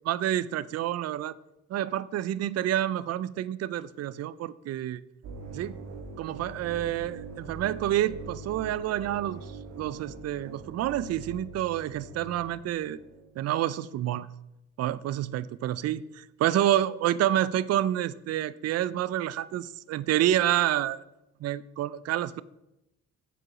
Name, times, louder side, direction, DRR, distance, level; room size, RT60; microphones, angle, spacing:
voice 1, 0.0-1.3 1.7-5.0 5.5-5.8 6.2-13.0 13.4-14.3 14.8-16.0 16.4-21.0 21.4-22.4, right 12 dB, 55° right, 0.4 m, -28 dB
sound 1, 5.2-13.3, right 4 dB, 80° right, 1.5 m, -43 dB
7.3 x 5.0 x 6.0 m
cardioid pair, 90°, 30 cm